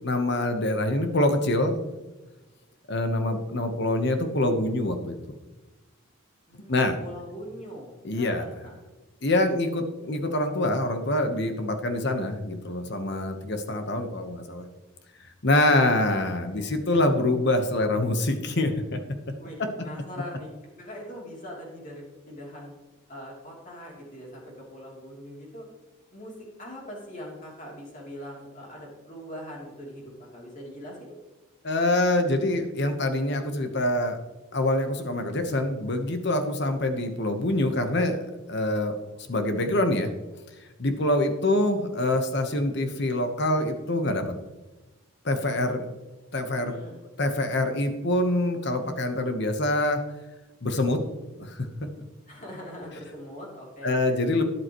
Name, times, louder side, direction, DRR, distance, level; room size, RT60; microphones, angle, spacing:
voice 1, 0.0-1.9 2.9-5.2 6.7-7.0 8.0-8.5 9.2-14.6 15.4-19.0 31.6-34.2 34.5-38.2 38.5-38.9 39.3-40.1 40.8-44.2 45.2-45.9 46.3-46.7 47.2-50.0 50.6-51.0 51.4-51.7 53.8-54.4, left 1 dB, 50° left, 7 dB, 1.2 m, -25 dB
voice 2, 6.5-8.7 16.5-16.7 19.4-20.5 20.8-22.7 23.1-25.7 26.1-26.3 26.6-31.1 46.5-47.0 52.3-54.0, equal, 35° left, -3 dB, 3.2 m, -42 dB
12.5 x 11.0 x 3.1 m, 1.1 s
head